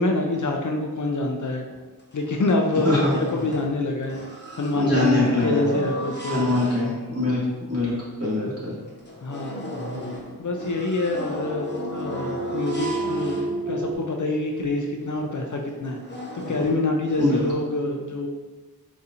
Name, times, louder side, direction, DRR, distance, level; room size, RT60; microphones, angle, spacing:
voice 1, 0.0-1.6 2.1-4.2 4.6-6.7 9.2-9.7 10.4-13.4 13.7-16.0 16.3-18.3, left 2 dB, 50° left, 1 dB, 0.4 m, -26 dB
sound 1, 1.7-1.8 2.1-3.8 4.0-7.3 7.8-7.9 8.3-8.4 8.9-14.0 14.6-14.7 15.0-15.2 15.7-17.5, equal, 30° left, 0.8 m, -34 dB
voice 2, 4.7-5.6 6.3-7.4 7.7-7.9 8.2-8.7 17.2-17.4, left 2 dB, 40° right, -8 dB, 1.5 m, -22 dB
sound 2, 10.3-13.9, right 2 dB, 90° right, 0.7 m, -31 dB
4.1 x 2.6 x 2.5 m, 1.3 s
wide cardioid pair, 45°, 39 cm